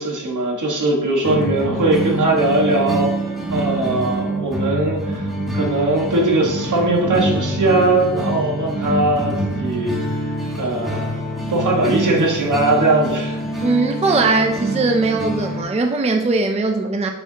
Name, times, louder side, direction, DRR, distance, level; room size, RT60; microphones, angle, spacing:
voice 1, 0.0-3.1 3.5-10.1 10.6-13.4, right 2 dB, 60° right, 0 dB, 1.6 m, -20 dB
sound 1, 1.2-15.6, right 1 dB, ahead, 1.4 m, -25 dB
voice 2, 13.6-17.1, right 3 dB, 20° right, 4 dB, 0.4 m, -19 dB
8.4 x 5.8 x 2.9 m, 0.97 s
wide cardioid pair, 170°, 34 cm